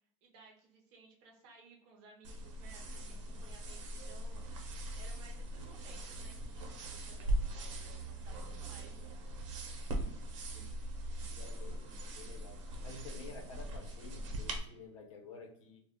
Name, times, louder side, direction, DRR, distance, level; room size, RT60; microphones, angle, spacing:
voice 1, 0.2-4.7 4.9-9.2, right 3 dB, 40° right, 0 dB, 0.8 m, -59 dB
sound 1, 2.2-14.6, right 1 dB, 80° right, 0.7 m, -40 dB
voice 2, 11.3-15.8, left 3 dB, 90° left, 3 dB, 0.8 m, -51 dB
2.3 x 2.2 x 3.4 m, 0.66 s
supercardioid pair, 170°, 16 cm